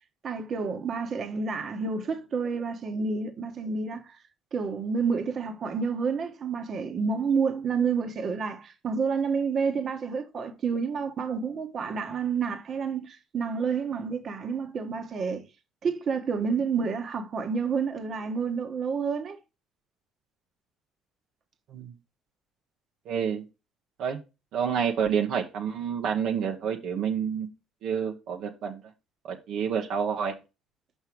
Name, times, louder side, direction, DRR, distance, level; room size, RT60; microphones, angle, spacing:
voice 1, 0.2-4.2 4.5-15.4 15.8-19.4, right 5 dB, 50° right, 1.3 m, -29 dB
voice 2, 23.0-23.4 24.0-24.2 24.5-27.5 27.8-28.8 29.2-30.3, right 7 dB, 70° right, 1.2 m, -28 dB
5.6 x 5.5 x 4.6 m
cardioid pair, 90°, 0 cm